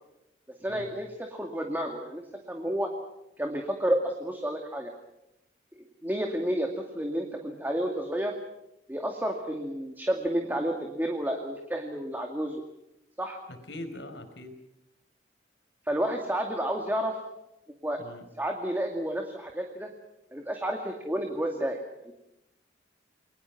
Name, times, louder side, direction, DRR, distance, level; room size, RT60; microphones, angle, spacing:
voice 1, 0.6-2.9 3.4-4.9 6.0-8.3 8.9-12.6 13.2-13.4 15.9-17.2 17.8-18.0 18.4-19.9 20.3-21.8 22.0-22.1, right 1 dB, 10° right, 2 dB, 2.2 m, -30 dB
voice 2, 13.5-14.5 18.0-18.3, left 1 dB, 80° left, 7 dB, 4.8 m, -42 dB
29.5 x 23.0 x 5.9 m, 0.87 s
head